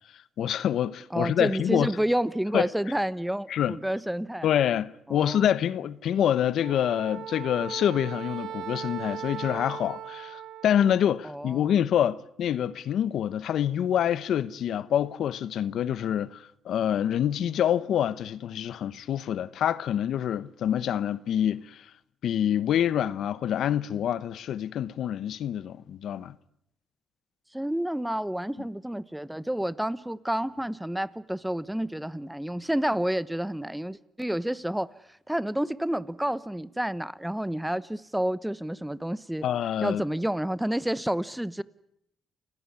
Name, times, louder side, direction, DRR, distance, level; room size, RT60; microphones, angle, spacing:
voice 1, 0.4-1.9 2.5-2.7 3.5-3.8 4.4-21.9 22.2-26.3 39.4-40.0, left 10 dB, 70° left, 1.0 m, -26 dB
voice 2, 1.1-4.5 5.1-5.4 11.2-11.7 27.5-34.9 35.3-39.5 39.8-41.6, right 1 dB, 5° right, 0.9 m, -29 dB
Wind instrument woodwind instrument, 6.6-11.0, right 9 dB, 70° right, 1.4 m, -38 dB
29.0 x 16.5 x 9.7 m
cardioid pair, 90°, 0 cm